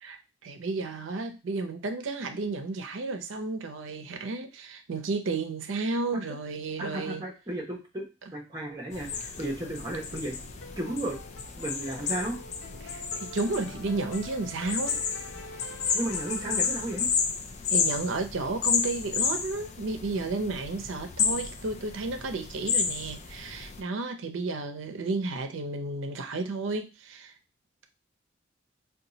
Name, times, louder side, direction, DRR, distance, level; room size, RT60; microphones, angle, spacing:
voice 1, 0.0-7.2 12.8-15.0 17.7-27.3, right 3 dB, 85° right, 6 dB, 0.6 m, -32 dB
voice 2, 6.8-10.4 10.8-11.2 11.6-12.4 15.9-17.1, right 1 dB, 20° right, -2 dB, 0.9 m, -34 dB
sound 1, 8.6-17.5, left 1 dB, 85° left, 0.7 m, -47 dB
sound 2, 8.9-23.8, left 6 dB, 35° left, 0.3 m, -32 dB
2.7 x 2.3 x 3.9 m, 0.30 s
head